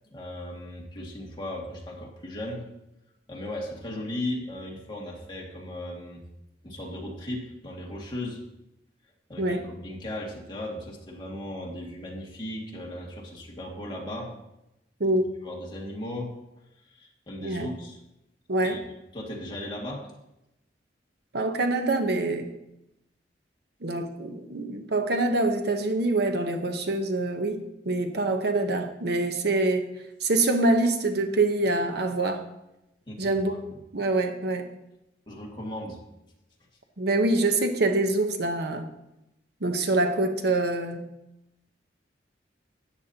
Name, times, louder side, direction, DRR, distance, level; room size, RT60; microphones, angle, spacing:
voice 1, 0.1-2.6 3.3-6.3 6.6-8.4 9.3-14.3 15.4-16.3 16.9-18.0 18.6-18.8 19.1-20.1 33.1-33.4 35.3-36.0, left 1 dB, 25° left, -2 dB, 2.1 m, -36 dB
voice 2, 15.0-15.3 17.4-17.7 18.5-18.8 21.3-22.5 23.8-29.9 30.2-32.4 33.2-33.6 33.9-34.6 37.0-38.9 39.6-41.1, right 2 dB, 65° right, 5 dB, 1.0 m, -25 dB
13.5 x 9.3 x 2.9 m, 0.89 s
head